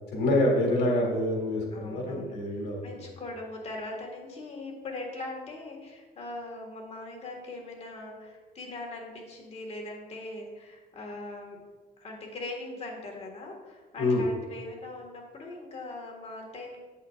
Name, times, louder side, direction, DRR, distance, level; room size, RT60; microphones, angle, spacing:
voice 1, 0.1-2.8 14.0-14.2, left 1 dB, 75° left, -1 dB, 2.0 m, -26 dB
voice 2, 1.7-11.6 12.0-16.8, left 2 dB, 40° left, 0 dB, 1.7 m, -41 dB
8.3 x 7.6 x 2.5 m, 1.3 s
cardioid pair, 110°, 17 cm